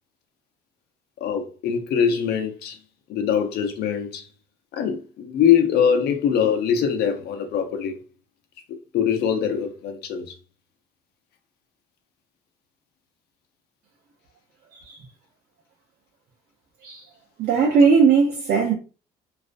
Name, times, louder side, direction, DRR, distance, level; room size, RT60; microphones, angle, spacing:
voice 1, 1.2-2.8 3.1-4.3 4.7-8.0 8.9-10.3, left 8 dB, 70° left, 0.6 m, -22 dB
voice 2, 17.4-18.7, right 5 dB, 60° right, 0.6 m, -18 dB
2.4 x 2.1 x 2.5 m
cardioid pair, 110°, 17 cm